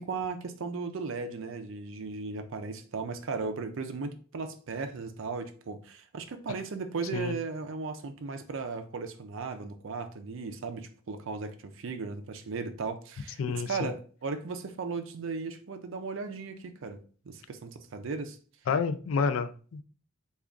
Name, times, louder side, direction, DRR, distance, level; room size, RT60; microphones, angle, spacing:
voice 1, 0.0-18.4, right 4 dB, 65° right, 0.5 m, -36 dB
voice 2, 13.4-13.9 18.7-19.8, left 5 dB, 65° left, 0.3 m, -29 dB
3.4 x 2.4 x 3.6 m
head